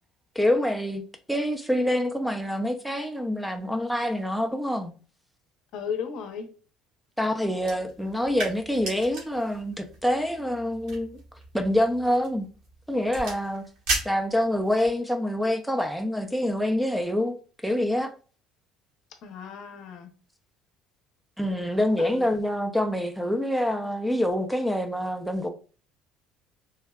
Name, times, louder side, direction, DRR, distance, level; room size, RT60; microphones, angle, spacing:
voice 1, 0.4-1.0 1.3-4.9 7.2-11.2 11.5-12.5 12.9-13.7 14.1-17.3 17.6-18.1 21.4-25.5, left 1 dB, ahead, 0.3 m, -26 dB
voice 2, 5.7-6.5 19.2-20.1 22.0-22.3, left 7 dB, 65° left, 0.6 m, -35 dB
sound 1, 7.6-14.9, right 2 dB, 75° right, 1.3 m, -37 dB
3.5 x 2.1 x 2.3 m
cardioid pair, 120°, 0 cm